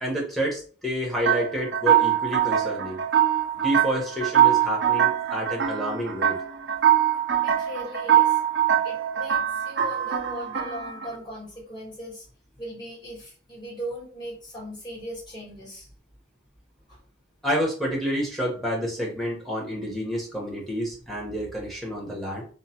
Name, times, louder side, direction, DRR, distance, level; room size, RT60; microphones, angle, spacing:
voice 1, 0.0-3.0 3.6-6.4 17.4-22.4, equal, ahead, -3 dB, 0.8 m, -29 dB
sound 1, 1.2-11.2, right 10 dB, 65° right, 0.4 m, -23 dB
voice 2, 7.4-8.4 8.8-12.3 12.6-15.9 16.9-17.0, equal, 25° left, -8 dB, 1.2 m, -38 dB
2.9 x 2.0 x 2.8 m, 0.41 s
head